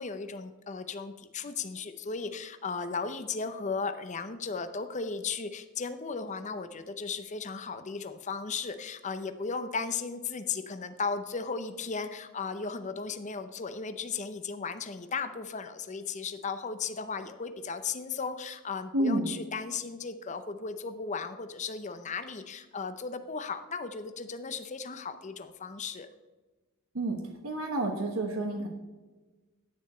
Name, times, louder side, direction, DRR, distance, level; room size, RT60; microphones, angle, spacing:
voice 1, 0.0-26.1, left 5 dB, 35° left, 10 dB, 0.6 m, -36 dB
voice 2, 18.9-19.3 26.9-27.2 27.4-28.7, right 1 dB, 80° right, 2 dB, 1.3 m, -29 dB
10.5 x 8.9 x 4.3 m, 1.2 s
head